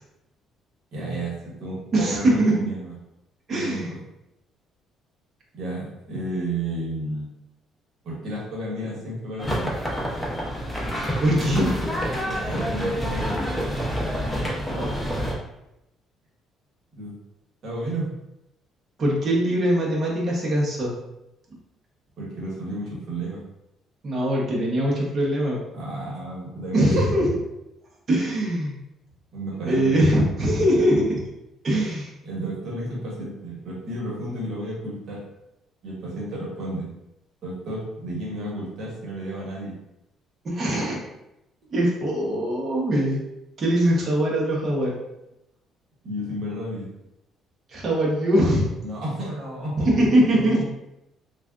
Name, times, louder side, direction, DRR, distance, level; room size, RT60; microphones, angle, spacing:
voice 1, 0.9-2.9 3.5-3.8 5.5-7.3 8.0-9.7 12.3-13.3 17.0-17.1 17.6-18.1 22.2-23.4 25.7-26.9 29.3-30.0 31.7-31.8 32.2-35.2 35.8-36.9 37.4-39.7 46.0-46.9 48.8-50.6, right 1 dB, 60° right, -4 dB, 1.2 m, -32 dB
voice 2, 1.9-2.7 3.5-3.9 11.2-11.7 14.7-15.3 19.0-20.9 24.0-25.6 26.7-27.4 28.1-28.8 29.7-31.2 31.6-32.1 40.4-41.0 41.7-43.2 43.6-44.9 47.7-48.6 49.8-50.6, right 1 dB, 40° right, -4 dB, 0.9 m, -22 dB
sound 1, 9.4-15.4, equal, 5° left, 0.7 m, -27 dB
3.3 x 2.4 x 2.4 m, 0.88 s
cardioid pair, 95°, 0 cm